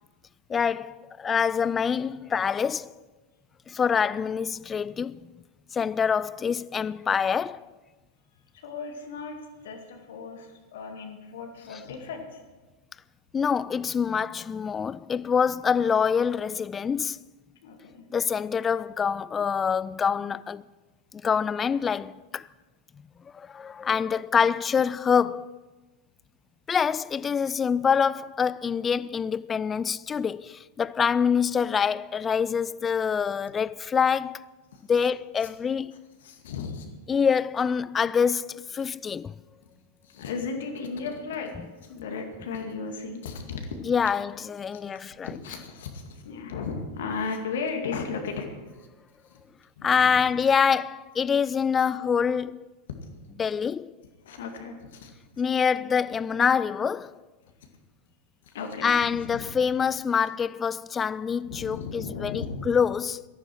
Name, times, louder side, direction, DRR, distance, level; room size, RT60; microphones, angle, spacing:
voice 1, 0.5-2.9 3.7-5.2 5.7-7.6 13.3-17.2 18.1-20.6 21.2-22.5 23.3-25.5 26.7-34.4 34.9-35.9 37.1-39.4 43.9-45.3 49.8-52.7 53.4-53.9 55.4-57.1 58.8-63.2, left 6 dB, 20° left, 0.4 m, -25 dB
voice 2, 8.5-9.4 9.6-12.4 17.6-18.0 34.7-34.8 36.2-36.9 40.0-41.6 41.8-43.8 44.7-44.8 45.2-48.5 49.2-49.4 49.8-50.4 53.0-53.1 54.2-55.4 58.5-59.5 61.4-62.8, left 5 dB, 60° left, 2.2 m, -36 dB
17.5 x 13.5 x 4.6 m
figure-of-eight pair, 90°, 0 cm